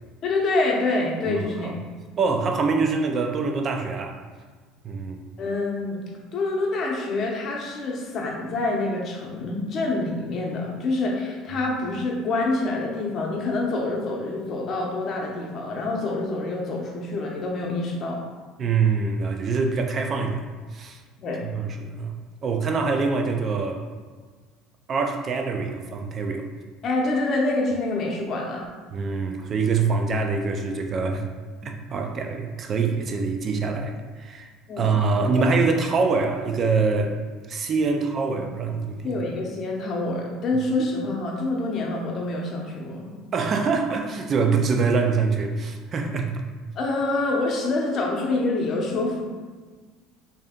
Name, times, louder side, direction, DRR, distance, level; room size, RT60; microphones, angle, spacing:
voice 1, 0.2-1.8 5.4-6.0 6.3-18.2 21.2-21.4 26.8-28.7 34.7-34.9 35.3-35.6 38.3-38.4 39.0-43.1 46.8-49.2, left 2 dB, 40° left, -1 dB, 0.7 m, -26 dB
voice 2, 1.3-1.7 2.2-4.2 4.8-5.2 18.6-20.4 20.7-21.0 21.4-22.1 22.4-23.8 24.9-26.5 28.9-31.2 31.6-34.5 34.8-37.1 37.5-39.2 43.3-46.4, right 4 dB, 35° right, 4 dB, 0.4 m, -24 dB
3.3 x 2.8 x 3.6 m, 1.5 s
cardioid pair, 140°, 0 cm